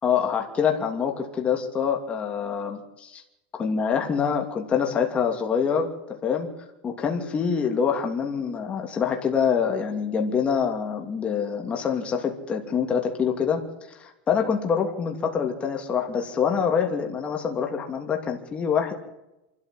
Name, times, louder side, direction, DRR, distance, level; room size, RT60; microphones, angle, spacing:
voice 1, 0.0-3.2 3.5-6.5 6.8-13.6 14.0-18.9, left 7 dB, 20° left, 3 dB, 2.8 m, -25 dB
27.0 x 13.0 x 7.8 m, 0.96 s
supercardioid pair, 145°, 6 cm